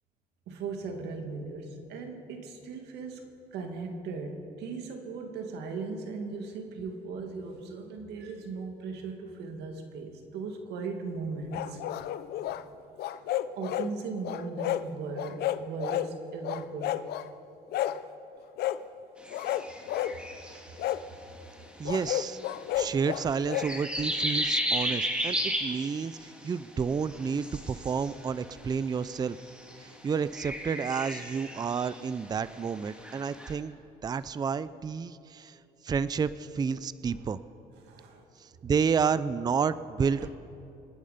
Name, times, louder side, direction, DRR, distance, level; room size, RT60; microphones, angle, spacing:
voice 1, 0.5-3.2 3.5-11.8 13.6-17.0 19.6-19.7 37.1-37.4 37.8-38.3 38.6-38.7 40.2-40.3, right 4 dB, 80° right, 4 dB, 2.1 m, -38 dB
sound 1, 11.5-12.6 13.0-13.9 14.2-14.8 15.1-16.1 16.4-17.3 17.7-18.0 18.6-18.8 19.3-20.1 20.8-21.0 21.8-23.7, left 13 dB, 70° left, 0.6 m, -31 dB
sound 2, 19.2-20.9 22.0-22.5 23.3-26.5 26.8-28.6 29.3-29.9 30.2-33.5, equal, 5° right, 2.4 m, -34 dB
voice 2, 21.8-22.4 22.8-29.4 30.0-33.8 34.0-35.6 35.8-37.4 38.4-40.3, right 6 dB, 25° right, 16 dB, 0.4 m, -30 dB
26.5 x 9.5 x 5.1 m, 2.8 s
cardioid pair, 110°, 17 cm